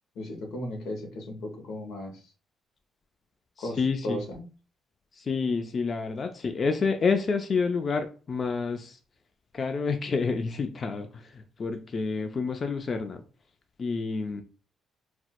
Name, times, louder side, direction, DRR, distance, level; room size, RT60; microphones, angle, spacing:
voice 1, 0.2-2.1 3.6-3.8 4.0-4.4, left 1 dB, 85° left, 4 dB, 0.8 m, -35 dB
voice 2, 3.6-4.2 5.1-9.0 9.5-13.2 13.8-14.4, left 4 dB, 45° left, 6 dB, 0.3 m, -29 dB
4.2 x 2.1 x 2.2 m, 0.37 s
cardioid pair, 90°, 0 cm